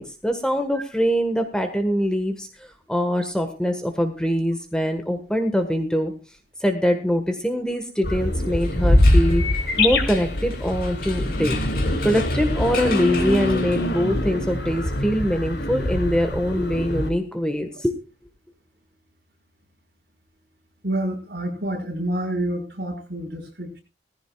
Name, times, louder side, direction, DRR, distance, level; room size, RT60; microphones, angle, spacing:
voice 1, 0.0-6.1 6.6-11.6 12.0-17.9, equal, 5° left, 5 dB, 1.4 m, -23 dB
sound 1, 8.0-17.1, left 1 dB, 70° left, 2.7 m, -23 dB
sound 2, 8.5-14.2, left 5 dB, 55° left, 3.2 m, -37 dB
voice 2, 20.8-23.8, right 1 dB, 60° right, 1 dB, 5.8 m, -28 dB
19.5 x 15.5 x 2.3 m, 0.30 s
head